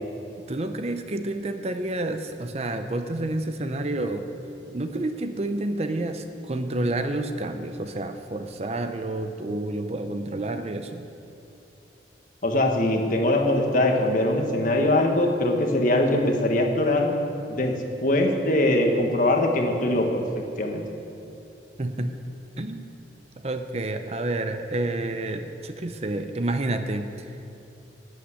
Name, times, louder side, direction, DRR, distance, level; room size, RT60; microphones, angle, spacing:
voice 1, 0.5-4.3 4.7-11.1 21.8-22.2 22.6-22.8 23.4-27.1, right 2 dB, 35° right, 8 dB, 0.6 m, -29 dB
voice 2, 12.4-17.1 17.5-17.7 18.0-20.2 20.6-20.8, left 1 dB, 50° left, 2 dB, 1.5 m, -22 dB
11.5 x 8.9 x 8.4 m, 2.8 s
head